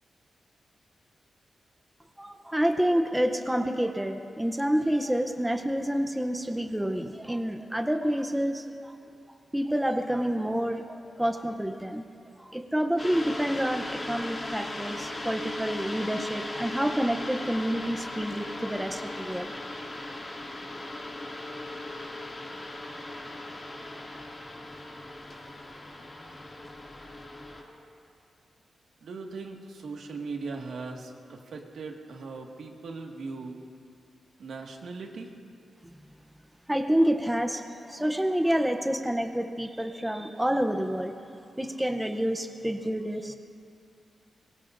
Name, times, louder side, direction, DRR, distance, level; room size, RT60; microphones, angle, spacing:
voice 1, 2.2-8.9 9.5-12.0 12.4-19.6 36.7-41.1 41.6-43.4, equal, 5° right, 6 dB, 0.6 m, -28 dB
sound 1, 13.0-27.6, left 1 dB, 25° left, 2.2 m, -38 dB
voice 2, 29.0-33.6 34.4-35.3, right 4 dB, 75° right, 1 dB, 1.7 m, -39 dB
23.5 x 23.0 x 2.5 m, 2.5 s
wide cardioid pair, 175°, 0 cm